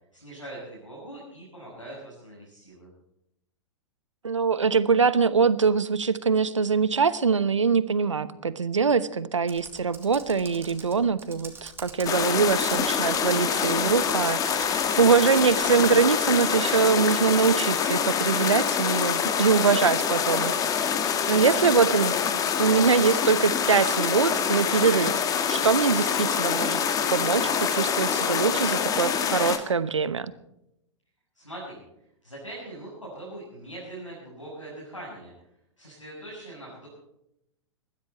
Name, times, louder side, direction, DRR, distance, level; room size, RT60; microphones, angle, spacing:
voice 1, 0.1-2.9 31.3-31.8 32.2-35.3 35.8-36.9, right 1 dB, 90° left, -6 dB, 7.4 m, -41 dB
voice 2, 4.2-20.5 21.3-22.2 22.6-26.8 27.1-30.3, right 5 dB, 75° right, 16 dB, 1.0 m, -23 dB
Computer keyboard, 9.4-16.2, right 4 dB, 15° right, 2.9 m, -45 dB
sound 1, 12.0-29.6, left 7 dB, 20° left, 1.9 m, -25 dB
21.0 x 15.5 x 4.4 m, 0.81 s
figure-of-eight pair, 105°, 16 cm